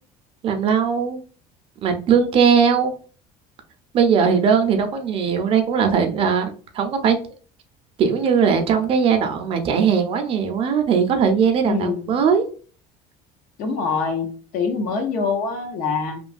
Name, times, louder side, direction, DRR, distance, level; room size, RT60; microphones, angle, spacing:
voice 1, 0.4-1.2 1.8-2.9 3.9-7.2 8.0-12.4 13.7-13.8, right 6 dB, 35° right, 0.5 m, -19 dB
voice 2, 11.7-12.1 13.6-16.2, left 4 dB, 60° left, 0.8 m, -24 dB
3.0 x 2.2 x 2.4 m
cardioid pair, 160°, 16 cm